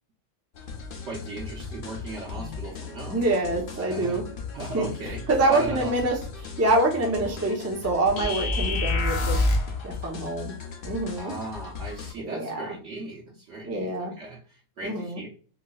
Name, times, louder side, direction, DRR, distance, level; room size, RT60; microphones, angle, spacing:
sound 1, 0.5-12.1, left 5 dB, 55° left, 0.7 m, -38 dB
voice 1, 1.1-3.2 3.7-4.2 4.5-6.0 7.4-7.5 11.2-15.3, right 2 dB, 65° right, -3 dB, 1.0 m, -37 dB
voice 2, 3.1-4.2 4.7-4.9 5.3-9.4 9.8-10.5 10.8-11.3 12.3-12.6 13.7-14.1 14.8-15.2, right 2 dB, 20° right, 0 dB, 0.4 m, -25 dB
sound 2, 8.2-9.8, left 2 dB, 85° left, 1.1 m, -24 dB
4.5 x 2.0 x 2.3 m, 0.39 s
omnidirectional pair, 1.3 m